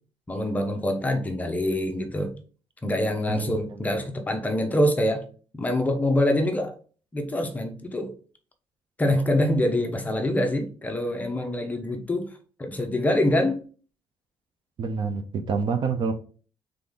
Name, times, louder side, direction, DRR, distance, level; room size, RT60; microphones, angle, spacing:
voice 1, 0.3-2.3 2.8-5.2 5.5-6.7 7.1-8.1 9.0-12.3 12.6-13.6, left 1 dB, 15° left, 4 dB, 0.7 m, -25 dB
voice 2, 3.3-3.9 14.8-16.1, right 5 dB, 45° right, 8 dB, 0.6 m, -28 dB
3.8 x 3.4 x 3.8 m, 0.40 s
cardioid pair, 150°, 10 cm